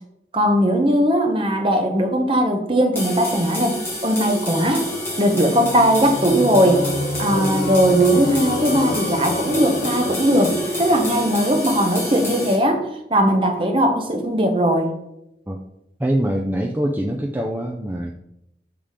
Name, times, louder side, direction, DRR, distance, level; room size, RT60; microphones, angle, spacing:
voice 1, 0.3-3.8 4.0-4.9 5.2-6.9 7.2-12.8 13.1-14.9, equal, 30° right, 3 dB, 1.0 m, -19 dB
sound 1, 3.0-12.6, left 1 dB, 15° left, 1.8 m, -29 dB
sound 2, 4.6-12.9, left 1 dB, 60° left, 0.8 m, -29 dB
voice 2, 16.0-18.1, right 1 dB, 10° right, 0 dB, 0.4 m, -23 dB
7.3 x 3.7 x 4.9 m, 0.83 s
head